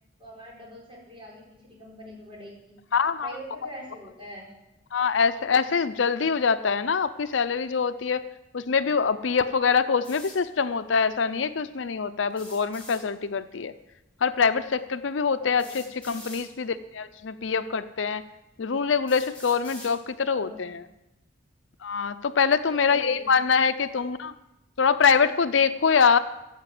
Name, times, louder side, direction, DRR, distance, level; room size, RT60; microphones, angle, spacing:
voice 1, 0.2-2.8 3.2-4.5 15.4-15.9 20.3-20.7 22.7-23.3, right 1 dB, 30° right, -3 dB, 4.7 m, -43 dB
voice 2, 2.9-3.3 4.9-8.2 8.5-13.7 14.2-18.2 18.6-20.8 21.8-24.3 24.8-26.2, left 5 dB, 80° left, 12 dB, 0.6 m, -24 dB
sound 1, 10.0-10.4 12.3-13.0 14.4-14.5 15.6-16.4 17.4-17.5 18.2-18.3 19.1-19.9, left 1 dB, 5° left, 4.9 m, -44 dB
15.5 x 8.1 x 7.7 m, 0.95 s
head